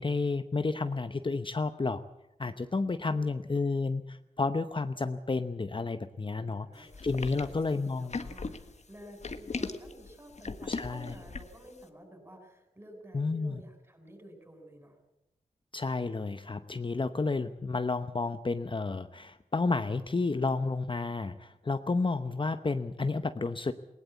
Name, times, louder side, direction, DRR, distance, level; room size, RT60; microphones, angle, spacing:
voice 1, 0.0-2.0 2.4-8.2 10.7-11.1 13.1-13.6 15.7-23.7, left 3 dB, 35° left, 10 dB, 0.8 m, -31 dB
voice 2, 3.1-3.7 6.3-15.0, equal, 20° right, 4 dB, 7.4 m, -52 dB
sound 1, 6.9-11.7, left 3 dB, 55° left, 1.6 m, -38 dB
20.0 x 17.5 x 8.3 m, 0.93 s
cardioid pair, 55°, 14 cm